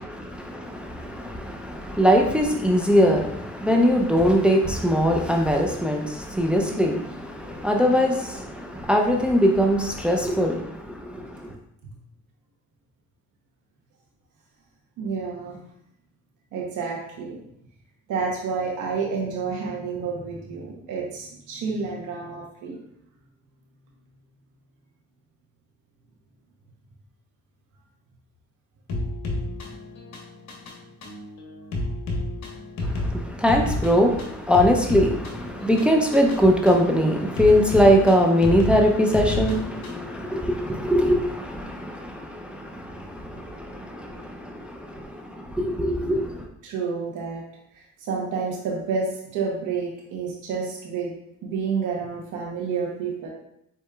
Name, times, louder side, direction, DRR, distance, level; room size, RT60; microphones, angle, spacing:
voice 1, 0.0-11.5 32.8-46.4, equal, 5° right, 0.6 m, -22 dB
voice 2, 15.0-15.6 16.5-17.4 18.1-22.8 46.6-47.4 47.7-51.1 51.4-53.3, right 5 dB, 90° right, 0.9 m, -29 dB
sound 1, 28.9-40.1, left 1 dB, 65° left, 1.1 m, -31 dB
4.8 x 4.2 x 2.3 m
cardioid pair, 90°, 30 cm